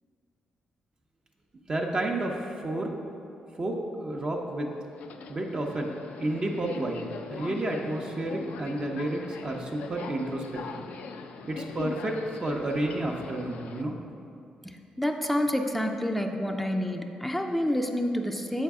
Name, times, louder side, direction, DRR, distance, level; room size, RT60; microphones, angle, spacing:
voice 1, 1.7-2.4 2.6-2.9 3.6-4.7 5.3-5.9 6.2-7.0 7.3-10.8 11.4-13.9, right 1 dB, 40° right, 0 dB, 0.7 m, -31 dB
Subway metro underground, 4.9-13.8, left 5 dB, 80° left, 0.3 m, -42 dB
voice 2, 15.0-18.6, equal, 5° left, 3 dB, 0.4 m, -28 dB
7.3 x 4.0 x 3.5 m, 2.6 s
supercardioid pair, 60°, 3 cm